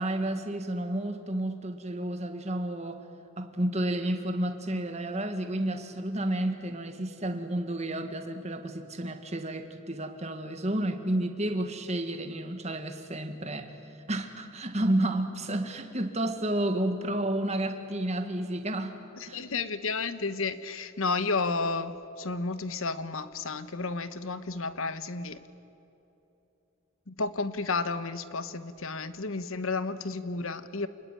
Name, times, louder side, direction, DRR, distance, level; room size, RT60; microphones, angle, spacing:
voice 1, 0.0-3.0 3.4-13.7 14.1-19.5, right 1 dB, 30° right, 7 dB, 1.7 m, -31 dB
voice 2, 19.2-25.4 27.1-30.9, left 3 dB, 70° left, 12 dB, 1.2 m, -32 dB
28.5 x 20.5 x 9.1 m, 2.9 s
head